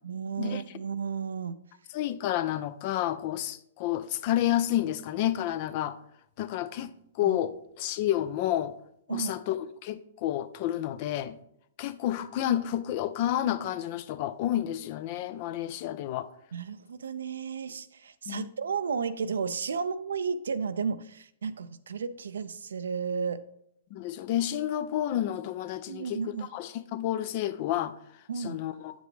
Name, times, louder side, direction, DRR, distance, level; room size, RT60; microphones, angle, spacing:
voice 1, 0.0-1.6 7.2-7.4 9.1-9.3 16.5-23.4 25.9-26.5 28.3-28.6, right 6 dB, 75° right, 0.4 m, -33 dB
voice 2, 1.9-6.0 6.4-6.9 7.2-8.7 9.1-11.4 11.8-16.3 18.3-18.5 23.9-27.9 28.4-28.9, left 12 dB, 45° left, 0.5 m, -30 dB
8.7 x 5.2 x 3.2 m
hypercardioid pair, 120°, 0 cm